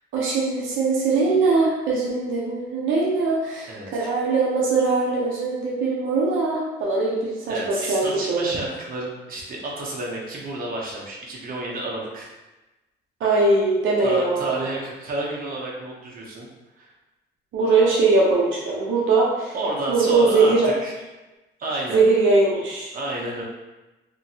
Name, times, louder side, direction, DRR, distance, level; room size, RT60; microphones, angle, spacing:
voice 1, 0.1-8.5 13.2-14.7 17.5-19.5 19.9-20.7 21.9-22.9, right 3 dB, 80° right, -4 dB, 0.7 m, -21 dB
voice 2, 3.7-4.1 7.5-12.3 14.0-16.5 16.8-16.9 19.5-20.9 21.6-22.0 22.9-23.4, right 2 dB, 45° right, -4 dB, 0.8 m, -30 dB
2.9 x 2.6 x 2.7 m, 1.1 s
cardioid pair, 90°, 20 cm